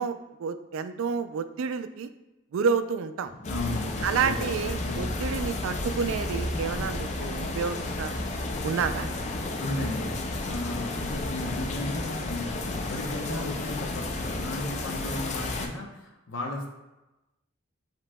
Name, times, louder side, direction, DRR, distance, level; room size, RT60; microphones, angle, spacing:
voice 1, 0.0-2.1 2.5-3.3 4.0-8.2 8.6-9.1, right 6 dB, 85° right, 11 dB, 0.3 m, -29 dB
sound 1, 3.2-11.9, left 1 dB, 5° left, 1.3 m, -51 dB
voice 2, 3.4-4.5 4.8-5.1 9.6-10.1 10.4-16.7, left 2 dB, 70° left, 1 dB, 0.8 m, -35 dB
sound 2, 3.4-15.7, left 2 dB, 35° left, 0.4 m, -32 dB
7.4 x 3.0 x 2.2 m, 1.0 s
head